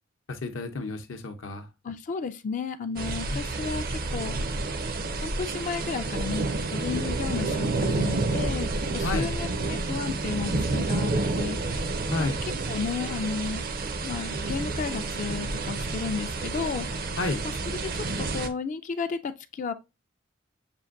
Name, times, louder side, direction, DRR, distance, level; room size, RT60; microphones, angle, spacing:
voice 1, 0.3-1.7 3.3-3.5 9.0-9.3 12.1-12.4 17.2-17.5, left 3 dB, 75° left, 0.6 m, -31 dB
voice 2, 1.8-4.3 5.2-6.5 6.7-11.6 12.2-12.3 12.7-13.7 14.0-17.1 17.8-19.7, left 5 dB, 40° left, 0.3 m, -33 dB
sound 1, 3.0-18.5, right 3 dB, 50° right, 0.5 m, -29 dB
6.8 x 2.5 x 2.3 m
head